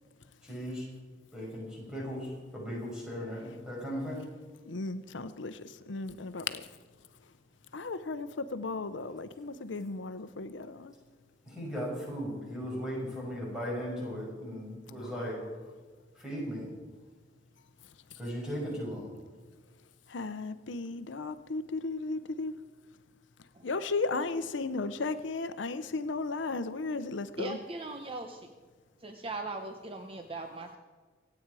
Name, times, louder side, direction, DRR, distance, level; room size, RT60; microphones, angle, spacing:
voice 1, 0.4-0.9 1.3-4.2 11.5-15.4 16.2-16.7 18.2-19.1, equal, 5° right, -5 dB, 6.1 m, -37 dB
voice 2, 4.6-6.8 7.7-10.9 15.0-15.1 18.1-18.2 20.1-22.6 23.6-27.6, left 3 dB, 85° left, 12 dB, 0.7 m, -35 dB
voice 3, 27.4-28.5 29.0-30.8, right 2 dB, 30° right, 5 dB, 0.9 m, -39 dB
26.0 x 8.9 x 4.8 m, 1.4 s
head